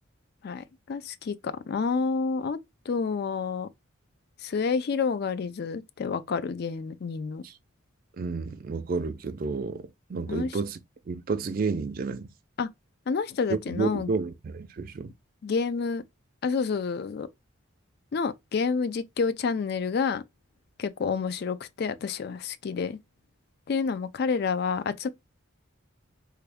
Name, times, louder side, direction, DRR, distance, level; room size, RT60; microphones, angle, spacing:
voice 1, 0.4-2.6 2.9-3.7 4.4-7.4 10.3-10.6 12.6-12.7 13.1-14.1 15.4-16.0 16.4-17.3 18.1-20.2 20.8-23.0 23.7-25.1, left 5 dB, 50° left, 0.3 m, -29 dB
voice 2, 8.2-10.8 11.1-12.3 13.5-15.1, right 4 dB, 45° right, 0.4 m, -31 dB
3.4 x 2.2 x 3.4 m
head